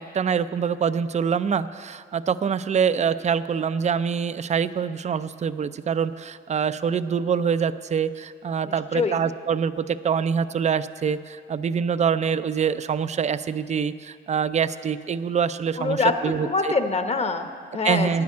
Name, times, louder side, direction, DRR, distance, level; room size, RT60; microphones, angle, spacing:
voice 1, 0.0-16.7 17.8-18.2, right 7 dB, 35° right, 13 dB, 0.5 m, -25 dB
voice 2, 15.8-18.1, left 4 dB, 30° left, 7 dB, 1.1 m, -25 dB
10.5 x 9.5 x 8.5 m, 2.1 s
cardioid pair, 90°, 20 cm